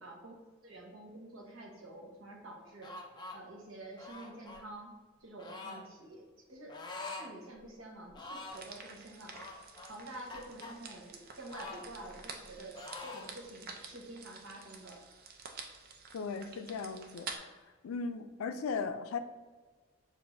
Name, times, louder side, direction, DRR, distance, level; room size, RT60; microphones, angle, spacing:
voice 1, 0.0-0.3 0.6-2.9 3.3-6.8 7.2-9.4 9.9-15.0, right 1 dB, 70° right, 0 dB, 1.0 m, -48 dB
sound 1, 2.8-3.4 4.0-4.6 5.4-5.8 6.7-7.3 7.6-7.7 8.1-8.7 9.3-10.7 11.5-12.5 12.7-13.3, left 3 dB, 20° left, 0.4 m, -45 dB
sound 2, 8.5-17.4, right 4 dB, 45° right, 0.5 m, -49 dB
voice 2, 16.1-17.5 17.8-19.2, left 5 dB, 85° left, 9 dB, 0.4 m, -37 dB
6.7 x 2.6 x 2.6 m, 1.4 s
head